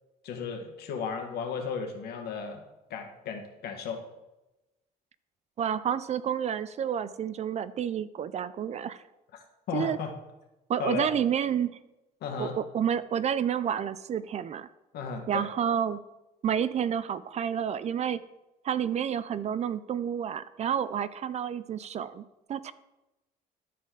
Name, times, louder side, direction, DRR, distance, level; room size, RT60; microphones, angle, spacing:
voice 1, 0.2-2.6 2.9-4.0 9.7-10.1 10.8-11.1 12.2-12.5 14.9-15.5, left 6 dB, 70° left, 3 dB, 1.6 m, -34 dB
voice 2, 5.6-9.0 9.7-10.0 10.7-11.7 12.4-14.7 15.3-16.0 16.4-18.2 18.6-22.2 22.5-22.7, right 8 dB, 40° right, 15 dB, 0.4 m, -29 dB
12.5 x 4.3 x 3.8 m, 0.98 s
cardioid pair, 110°, 17 cm